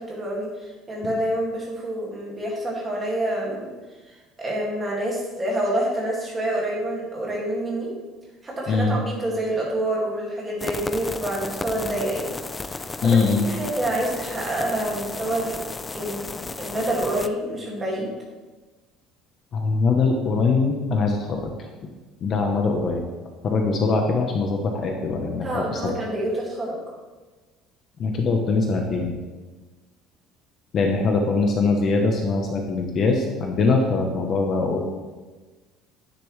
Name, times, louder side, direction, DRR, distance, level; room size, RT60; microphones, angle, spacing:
voice 1, 0.0-3.7 4.1-7.9 8.4-12.4 12.7-15.6 15.9-18.1 25.4-26.8, right 1 dB, 15° right, -3 dB, 2.2 m, -27 dB
sound 1, 10.6-17.3, left 3 dB, 15° left, 0.3 m, -34 dB
voice 2, 13.0-13.5 19.5-21.5 22.2-23.0 23.4-25.9 28.0-29.2 30.7-34.9, left 4 dB, 30° left, 2 dB, 0.9 m, -22 dB
10.5 x 10.0 x 3.3 m, 1.3 s
cardioid pair, 180°, 0 cm